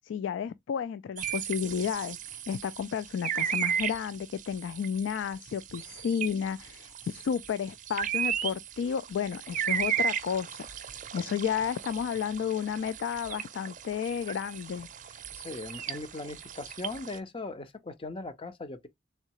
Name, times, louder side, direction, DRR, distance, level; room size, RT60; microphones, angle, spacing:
voice 1, 0.0-10.7 11.1-14.9, left 7 dB, 80° left, 0.3 m, -32 dB
sound 1, 1.2-17.2, right 8 dB, 45° right, 0.5 m, -35 dB
voice 2, 15.4-18.9, left 2 dB, 30° left, 0.6 m, -39 dB
3.7 x 3.2 x 2.9 m
head